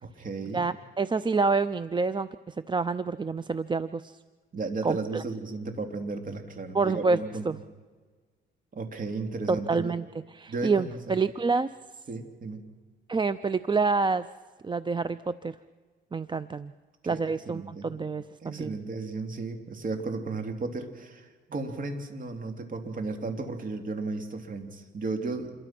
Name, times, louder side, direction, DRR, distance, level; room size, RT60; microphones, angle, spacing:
voice 1, 0.0-0.6 4.5-7.5 8.7-9.9 10.5-11.1 12.1-12.6 17.0-17.9 18.4-25.5, right 3 dB, 45° right, 5 dB, 3.4 m, -34 dB
voice 2, 0.5-4.2 4.8-5.2 6.7-7.2 7.4-7.6 9.5-10.0 10.3-11.7 13.1-14.3 14.6-15.5 16.1-16.7 17.1-18.8, right 4 dB, 25° right, 15 dB, 0.6 m, -27 dB
27.5 x 22.5 x 6.1 m, 1.4 s
cardioid pair, 90°, 20 cm